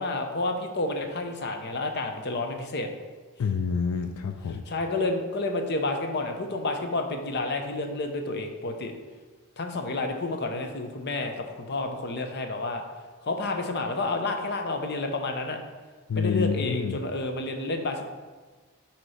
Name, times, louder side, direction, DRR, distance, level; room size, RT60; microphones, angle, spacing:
voice 1, 0.0-2.9 4.7-8.9 9.6-12.8 13.2-15.6 16.1-18.0, left 2 dB, 50° left, 5 dB, 0.7 m, -30 dB
voice 2, 3.4-4.6 16.1-17.0, left 6 dB, 80° left, 7 dB, 0.4 m, -27 dB
7.9 x 3.0 x 5.6 m, 1.4 s
head